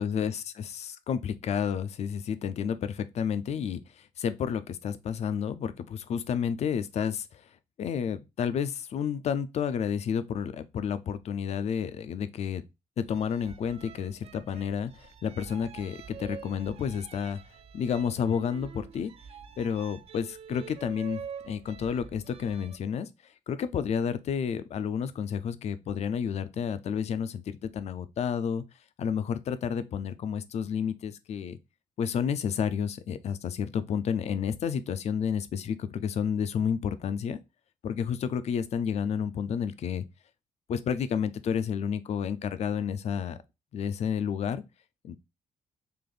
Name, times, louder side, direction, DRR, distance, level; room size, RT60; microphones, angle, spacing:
voice 1, 0.0-7.3 7.8-12.6 13.0-17.4 17.7-19.1 19.6-23.1 23.5-28.6 29.0-31.6 32.0-37.4 37.8-40.0 40.7-43.4 43.7-44.6 45.0-45.2, left 7 dB, 50° left, 0.4 m, -31 dB
sound 1, 13.1-22.8, right 7 dB, 45° right, 0.3 m, -46 dB
3.4 x 2.5 x 3.7 m
cardioid pair, 145°, 14 cm